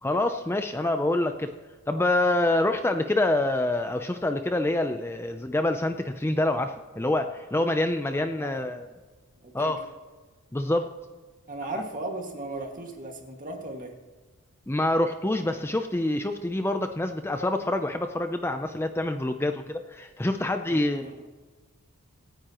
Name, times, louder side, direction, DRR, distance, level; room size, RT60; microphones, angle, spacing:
voice 1, 0.0-1.5 1.9-8.8 9.5-9.8 10.5-10.9 11.7-11.8 14.7-21.3, left 1 dB, 10° left, 7 dB, 0.5 m, -26 dB
voice 2, 9.4-9.8 11.5-13.9 19.3-19.5 20.6-21.3, right 2 dB, 40° right, 2 dB, 2.0 m, -37 dB
26.0 x 9.6 x 3.0 m, 1.3 s
head